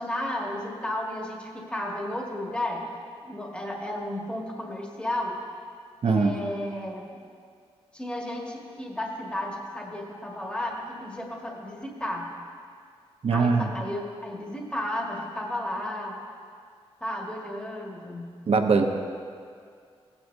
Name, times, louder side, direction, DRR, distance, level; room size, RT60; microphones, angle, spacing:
voice 1, 0.0-2.9 3.2-5.4 6.0-7.2 7.9-12.3 13.3-16.2 17.0-18.3, left 1 dB, 10° left, -1 dB, 1.7 m, -33 dB
voice 2, 6.0-6.3 13.2-13.7 18.5-18.8, right 4 dB, 65° right, 4 dB, 0.9 m, -21 dB
16.0 x 9.2 x 2.7 m, 2.2 s
cardioid pair, 60°, 11 cm